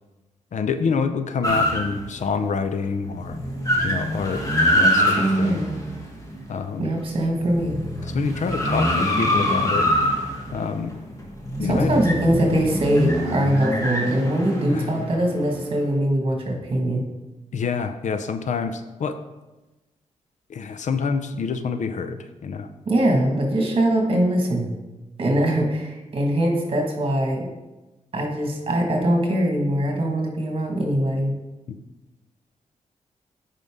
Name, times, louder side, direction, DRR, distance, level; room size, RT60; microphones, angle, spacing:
voice 1, 0.5-3.4 3.8-4.4 4.7-5.6 6.5-7.0 8.0-9.9 10.5-10.9 11.6-11.9 14.7-14.9 17.5-19.2 20.5-22.7 31.7-31.8, left 5 dB, 70° left, 9 dB, 0.6 m, -27 dB
sound 1, 1.4-2.4 2.8-2.9 3.2-6.8 7.3-15.8, equal, 25° left, 1.6 m, -24 dB
voice 2, 5.1-5.8 6.8-7.8 11.6-17.0 22.9-24.7 25.2-27.5 28.1-31.3, right 1 dB, 45° right, 2 dB, 1.7 m, -22 dB
9.3 x 5.4 x 3.6 m, 1.1 s
wide cardioid pair, 105°, 13 cm